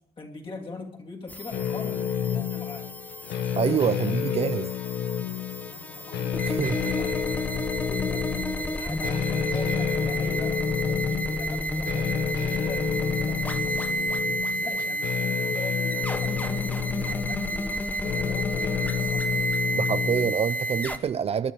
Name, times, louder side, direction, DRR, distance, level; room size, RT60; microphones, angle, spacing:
voice 1, 0.2-2.9 4.0-4.1 5.7-17.8 18.1-19.3, left 3 dB, 30° left, 3.0 m, -42 dB
sound 1, 1.3-21.0, equal, 10° left, 1.1 m, -30 dB
sound 2, 1.5-20.3, left 9 dB, 80° left, 1.2 m, -30 dB
voice 2, 3.6-4.7 6.5-6.8 19.7-21.5, right 8 dB, 35° right, 0.6 m, -26 dB
22.5 x 11.5 x 5.0 m
cardioid pair, 110°, 17 cm